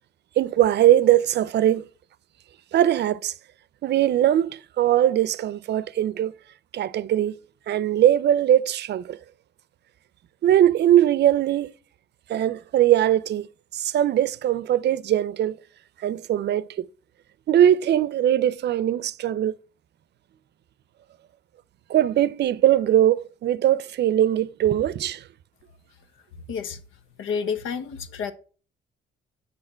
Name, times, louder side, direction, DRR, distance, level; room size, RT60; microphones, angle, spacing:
voice 1, 0.4-1.8 2.7-3.3 3.8-6.4 6.7-7.3 7.7-9.2 10.4-11.7 12.3-13.5 13.7-15.6 16.0-16.9 17.5-19.5 21.9-25.2, right 11 dB, 60° right, 0.5 m, -20 dB
voice 2, 26.5-26.8 27.2-28.3, left 6 dB, 80° left, 1.2 m, -29 dB
9.4 x 6.5 x 4.5 m
cardioid pair, 105°, 20 cm